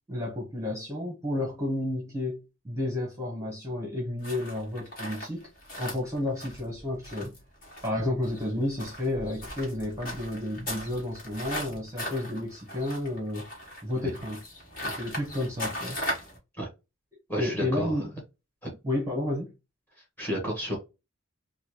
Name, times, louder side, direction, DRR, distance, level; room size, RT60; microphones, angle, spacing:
voice 1, 0.1-2.4 2.6-5.5 5.8-7.3 7.8-13.5 13.8-14.4 14.8-16.0 17.3-18.1 18.8-19.5, left 1 dB, 15° right, 1.0 m, -31 dB
sound 1, 4.2-16.4, left 1 dB, 40° left, 1.6 m, -38 dB
voice 2, 17.3-18.0 18.6-18.7 20.2-20.8, equal, 10° left, 1.4 m, -31 dB
4.1 x 2.3 x 2.9 m
head